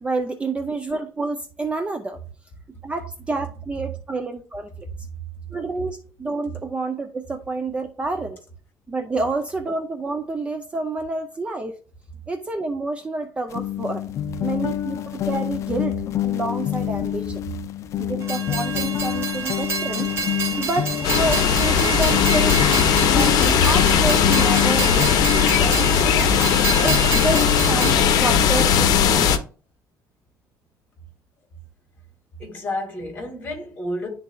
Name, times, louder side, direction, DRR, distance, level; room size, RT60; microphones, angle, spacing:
voice 1, 0.0-2.2 2.8-4.9 5.5-8.4 8.9-11.8 12.3-14.0 14.4-17.4 18.0-20.1 20.6-22.6 23.1-26.3 26.8-29.4, right 3 dB, 15° right, 0.5 m, -28 dB
sound 1, 13.5-29.3, left 12 dB, 45° left, 0.4 m, -27 dB
Train, 18.2-28.0, right 5 dB, 35° right, 1.4 m, -28 dB
sound 2, 21.0-29.4, left 8 dB, 65° left, 0.7 m, -18 dB
voice 2, 32.4-34.1, left 1 dB, 25° left, 2.1 m, -31 dB
11.0 x 3.9 x 2.3 m
cardioid pair, 160°, 7 cm